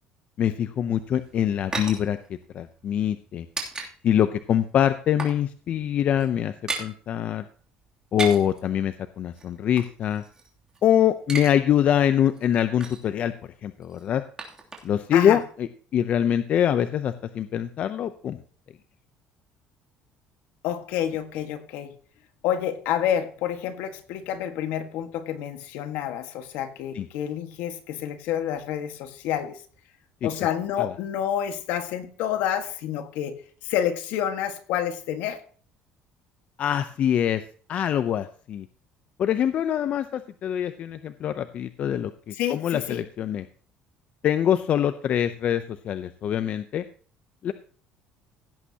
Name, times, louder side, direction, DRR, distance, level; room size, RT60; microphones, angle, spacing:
voice 1, 0.4-2.2 2.5-3.5 4.0-6.5 6.8-7.4 8.1-10.2 10.8-13.3 13.6-14.2 14.8-18.4 26.9-27.1 30.2-30.3 30.8-30.9 36.6-37.4 37.7-38.7 39.2-43.4 44.2-46.8 47.4-47.5, left 10 dB, 50° left, 10 dB, 0.7 m, -24 dB
sound 1, 0.9-3.9 4.2-4.4 4.7-5.4 5.7-5.8 6.1-6.9 8.0-8.6 9.3-10.8 11.1-11.6 11.8-11.9 12.3-13.1 13.8-15.1 15.4-15.5, right 3 dB, 25° right, 2.9 m, -35 dB
voice 2, 20.6-21.9 22.4-29.6 30.2-33.3 33.6-35.4 42.3-43.0, left 10 dB, 80° left, 7 dB, 1.6 m, -28 dB
16.5 x 8.5 x 2.9 m, 0.43 s
cardioid pair, 115°, 3 cm